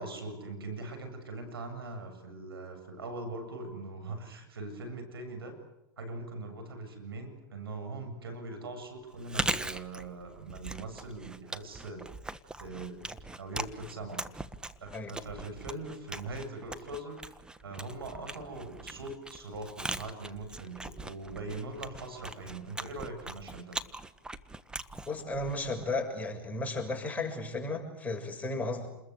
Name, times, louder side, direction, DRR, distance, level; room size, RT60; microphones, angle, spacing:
voice 1, 0.0-5.6 6.0-12.1 12.6-13.0 13.4-14.2 14.8-23.8, right 2 dB, 90° right, 6 dB, 7.6 m, -41 dB
Chewing mastication, 9.1-26.0, right 2 dB, 5° right, 1.3 m, -41 dB
voice 2, 25.1-28.9, left 2 dB, 10° left, 1 dB, 6.7 m, -34 dB
29.0 x 21.5 x 8.3 m, 0.91 s
hypercardioid pair, 110°, 12 cm